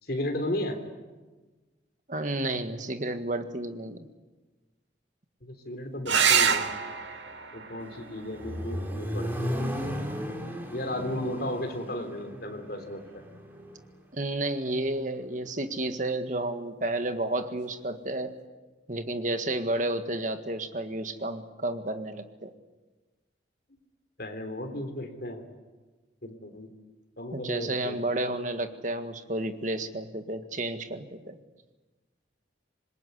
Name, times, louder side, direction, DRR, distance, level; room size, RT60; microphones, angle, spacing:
voice 1, 0.0-0.8 5.4-6.7 7.5-9.7 10.7-13.2 24.2-25.4 26.2-26.7 27.2-28.0, left 1 dB, 55° left, 4 dB, 3.5 m, -34 dB
voice 2, 2.1-4.0 14.1-18.3 18.9-22.5 27.3-31.4, right 1 dB, 40° right, 8 dB, 1.8 m, -31 dB
sound 1, 6.0-11.1 13.0-13.6 17.1-17.2 17.5-17.6, right 7 dB, 75° right, 1.8 m, -29 dB
Accelerating revving vroom, 7.8-13.8, equal, 10° right, 3.4 m, -35 dB
26.0 x 21.5 x 9.7 m, 1.2 s
head